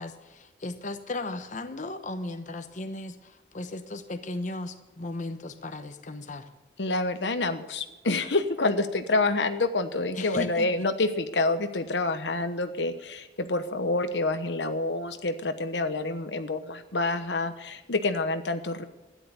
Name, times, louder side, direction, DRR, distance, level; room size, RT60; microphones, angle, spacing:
voice 1, 0.0-6.5 10.1-10.7, left 2 dB, 45° left, 8 dB, 1.0 m, -36 dB
voice 2, 6.8-18.8, left 2 dB, 80° left, 9 dB, 1.1 m, -27 dB
13.0 x 10.5 x 8.3 m, 1.0 s
head